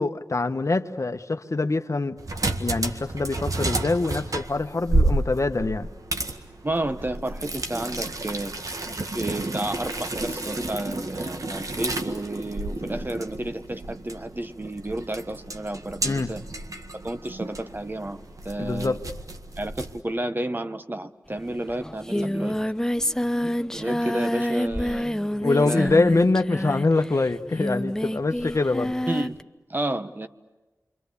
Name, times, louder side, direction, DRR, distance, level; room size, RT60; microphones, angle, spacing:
voice 1, 0.0-2.2 2.6-5.9 16.0-16.3 18.6-19.0 25.4-28.9, left 3 dB, 55° left, 1.2 m, -24 dB
sound 1, 2.2-20.0, right 2 dB, 60° right, 1.8 m, -31 dB
voice 2, 6.6-8.6 9.1-16.4 17.0-19.0 19.6-22.6 23.7-25.1 25.5-26.0 29.1-30.3, right 1 dB, 30° right, 1.3 m, -31 dB
Singing, 21.4-21.5 21.7-29.4, equal, 10° left, 0.8 m, -28 dB
27.5 x 24.5 x 8.4 m
cardioid pair, 40°, 6 cm